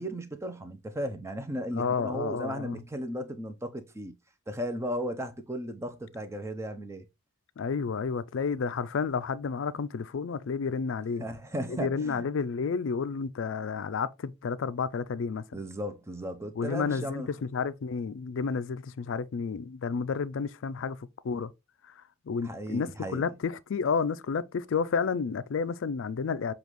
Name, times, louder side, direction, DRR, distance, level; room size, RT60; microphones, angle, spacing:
voice 1, 0.0-4.2 4.5-7.1 11.2-12.3 15.5-17.3 22.4-23.2, equal, 10° right, 0.5 m, -35 dB
voice 2, 1.7-2.8 7.6-11.2 11.7-15.6 16.5-21.0 21.2-21.5 21.8-21.9 22.3-26.5, left 5 dB, 60° left, 0.4 m, -31 dB
7.1 x 2.4 x 3.0 m
head